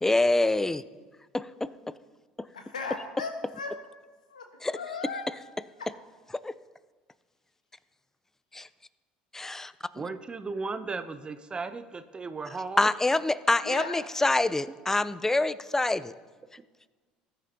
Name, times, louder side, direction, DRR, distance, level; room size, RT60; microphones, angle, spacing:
voice 1, 0.0-0.8 1.3-1.7 6.4-6.5 8.5-8.7 9.3-9.7 12.8-16.1, left 2 dB, 10° left, 17 dB, 0.5 m, -25 dB
voice 2, 2.5-3.7 4.3-4.5 4.7-5.9 13.6-14.0, left 4 dB, 85° left, 5 dB, 1.4 m, -37 dB
voice 3, 10.0-12.9, right 4 dB, 25° right, 11 dB, 0.7 m, -36 dB
19.5 x 10.0 x 2.9 m, 1.4 s
hypercardioid pair, 65°, 4 cm